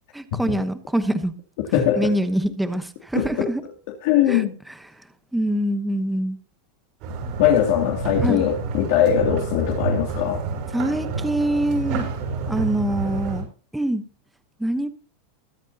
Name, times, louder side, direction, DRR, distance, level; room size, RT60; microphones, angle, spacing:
voice 1, 0.1-1.3 2.0-3.6 4.3-4.5 5.3-6.4 8.2-8.4 10.7-12.1 12.5-13.5 13.7-14.0 14.6-14.9, right 1 dB, 5° right, 1.0 m, -24 dB
voice 2, 1.7-2.1 3.1-3.5 4.0-4.5 7.4-10.4, left 10 dB, 60° left, 2.6 m, -20 dB
sound 1, 7.0-13.4, right 4 dB, 45° right, 6.8 m, -29 dB
22.5 x 9.0 x 2.9 m
supercardioid pair, 165°, 0 cm